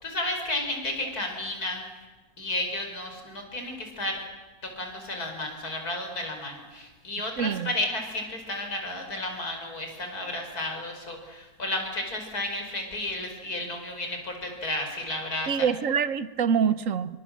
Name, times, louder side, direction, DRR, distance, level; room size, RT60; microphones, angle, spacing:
voice 1, 0.0-1.9 2.4-4.2 4.6-15.7, left 1 dB, 70° left, 4 dB, 5.6 m, -32 dB
voice 2, 7.4-7.7 15.5-17.2, right 7 dB, 60° right, 14 dB, 1.4 m, -25 dB
27.5 x 24.5 x 7.5 m, 1.2 s
omnidirectional pair, 1.7 m